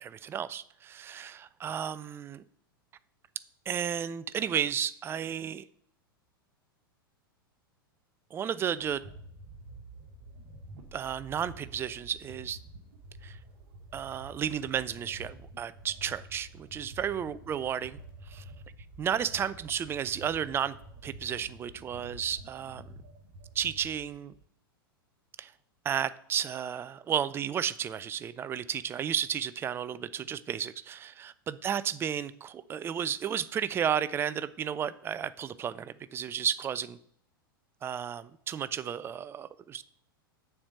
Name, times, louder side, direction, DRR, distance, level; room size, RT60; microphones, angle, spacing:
voice 1, 0.0-2.4 3.7-5.7 8.3-9.1 10.9-12.6 13.2-13.4 13.9-18.0 18.3-18.4 19.0-20.7 21.0-22.9 23.6-24.3 25.4-25.5 25.8-37.0 37.8-39.8, right 8 dB, 20° right, 16 dB, 0.4 m, -33 dB
sound 1, 8.8-24.4, right 1 dB, 45° right, 1.3 m, -49 dB
7.1 x 4.7 x 6.5 m, 0.67 s
figure-of-eight pair, 95°, 12 cm